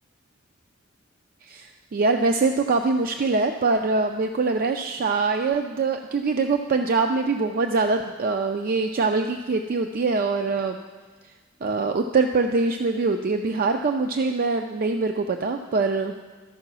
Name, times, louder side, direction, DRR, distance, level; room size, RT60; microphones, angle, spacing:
voice 1, 1.5-10.8 11.6-16.1, right 3 dB, 45° right, 5 dB, 0.4 m, -23 dB
13.0 x 4.8 x 6.1 m, 1.4 s
head